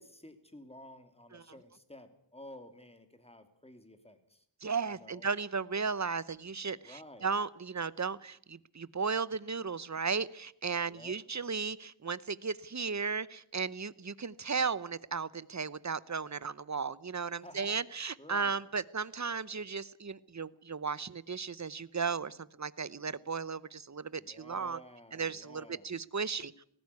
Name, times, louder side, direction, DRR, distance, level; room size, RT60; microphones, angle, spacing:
voice 1, 0.0-4.4 4.9-5.2 6.8-7.3 10.9-11.1 17.4-17.8 18.2-18.6 24.1-25.9, left 1 dB, 10° left, 9 dB, 2.8 m, -52 dB
voice 2, 4.6-24.8 25.1-26.5, right 5 dB, 35° right, 19 dB, 0.9 m, -35 dB
18.5 x 16.0 x 9.7 m, 0.70 s
wide cardioid pair, 65°, 48 cm